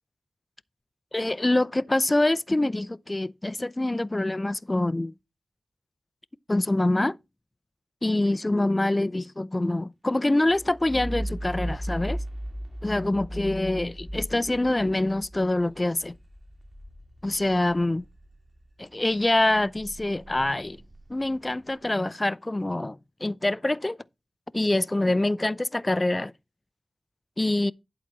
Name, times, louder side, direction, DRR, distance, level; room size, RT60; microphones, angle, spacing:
voice 1, 1.1-5.1 6.5-7.2 8.0-12.2 12.8-16.1 17.2-18.0 18.8-20.8 21.1-24.0 24.5-26.3 27.4-27.7, left 2 dB, 30° left, 0.6 m, -25 dB
sound 1, 10.5-18.7 19.1-21.7, equal, 30° right, 2.4 m, -37 dB
11.5 x 4.1 x 6.1 m
cardioid pair, 40°, 0 cm